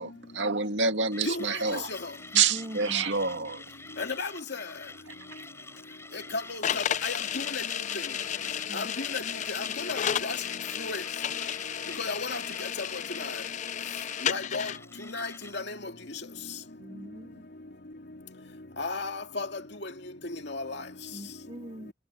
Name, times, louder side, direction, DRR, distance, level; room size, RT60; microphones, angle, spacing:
voice 1, 0.0-1.9 2.3-3.6 5.1-5.2, right 5 dB, 80° right, 2.1 m, -27 dB
Mechanisms, 1.1-15.7, left 3 dB, 15° left, 7.8 m, -47 dB
voice 2, 2.3-3.1 8.7-8.9 16.8-17.4 21.1-21.9, right 1 dB, 30° right, 0.9 m, -41 dB
voice 3, 4.0-4.6 6.1-7.2 8.7-8.9 9.1-9.2 9.5-10.4 10.8-11.0 12.0-12.4 13.2-13.3 14.3-14.7 15.1-15.8 18.8-19.5 20.5-20.8, left 3 dB, 65° left, 2.4 m, -33 dB
sound 1, 6.6-14.8, left 9 dB, 40° left, 0.4 m, -33 dB
head